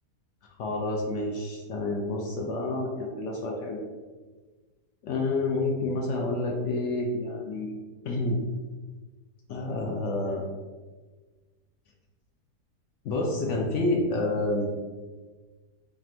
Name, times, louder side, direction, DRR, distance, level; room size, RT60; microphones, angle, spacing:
voice 1, 0.6-3.8 5.0-7.8 8.0-8.4 9.5-10.5 13.0-14.7, left 2 dB, 70° left, 0 dB, 0.7 m, -29 dB
3.5 x 2.5 x 4.2 m, 1.3 s
omnidirectional pair, 1.8 m